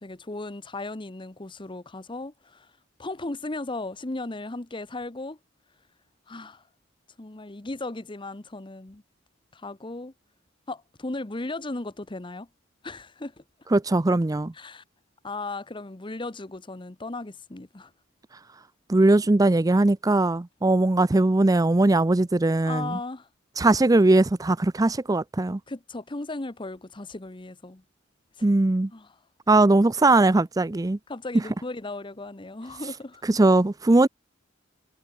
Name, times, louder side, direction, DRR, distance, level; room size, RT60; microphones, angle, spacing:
voice 1, 0.0-2.7 3.0-5.4 6.3-6.6 7.2-9.0 9.5-10.1 10.7-12.5 12.8-13.4 14.5-14.8 15.2-17.9 22.6-23.3 25.7-27.8 28.4-28.5 28.9-29.2 31.1-33.2, left 2 dB, 25° left, 1.0 m, -36 dB
voice 2, 13.7-14.5 18.9-23.0 23.6-25.6 28.4-28.9 29.5-31.0 33.3-34.1, right 2 dB, 20° right, 0.5 m, -20 dB
head